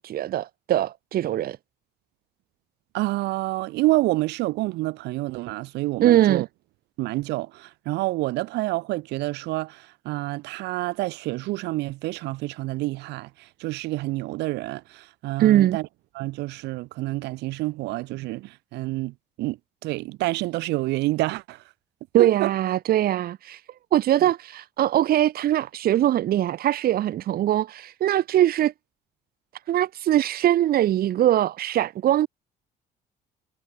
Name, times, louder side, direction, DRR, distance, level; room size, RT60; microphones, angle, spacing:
voice 1, 0.0-1.6 6.0-6.4 15.4-15.8 22.1-23.6 23.9-28.7 29.7-32.3, right 12 dB, 65° right, 2.5 m, -21 dB
voice 2, 2.9-6.5 7.0-13.3 13.6-15.9 16.2-19.6 19.8-21.6 22.2-22.5, right 20 dB, 90° right, 5.4 m, -28 dB
cardioid pair, 110°, 17 cm